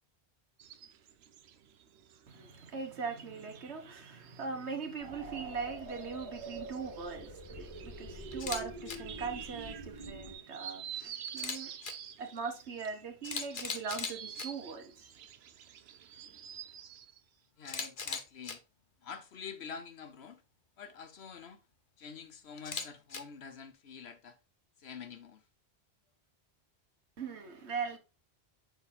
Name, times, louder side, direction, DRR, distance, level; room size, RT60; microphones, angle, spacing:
sound 1, 0.6-17.2, right 9 dB, 75° right, 0.9 m, -50 dB
voice 1, 2.3-11.8 12.2-15.3 27.2-28.0, right 5 dB, 90° right, 1.6 m, -40 dB
sound 2, 5.0-10.3, right 1 dB, 30° right, 2.2 m, -45 dB
Camera, 8.3-8.6 8.9-9.0 11.3-11.9 12.8-12.9 13.2-14.5 17.6-18.5 22.6-23.2, left 5 dB, 50° left, 1.0 m, -38 dB
voice 2, 17.6-18.6 19.0-20.4 20.8-21.6 22.0-24.4 24.8-25.4, left 6 dB, 70° left, 1.2 m, -47 dB
6.5 x 4.0 x 4.1 m
omnidirectional pair, 1.1 m